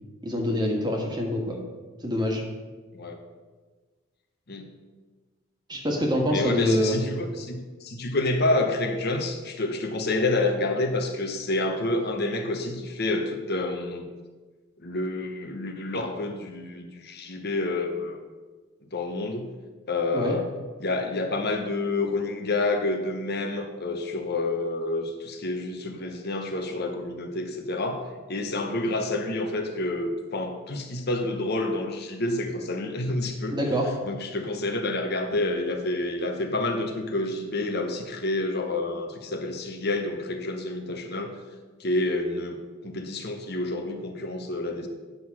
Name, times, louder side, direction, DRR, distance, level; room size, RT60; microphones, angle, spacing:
voice 1, 0.2-1.6 2.0-2.4 5.7-7.0 20.1-20.4 33.5-33.9, left 1 dB, 20° right, 1 dB, 1.6 m, -25 dB
voice 2, 6.3-14.1 14.8-18.2 18.9-19.5 19.9-20.4 20.8-28.0 28.3-33.6 34.0-41.3 41.8-44.9, left 2 dB, 50° left, 4 dB, 1.0 m, -28 dB
9.3 x 6.2 x 6.1 m, 1.3 s
head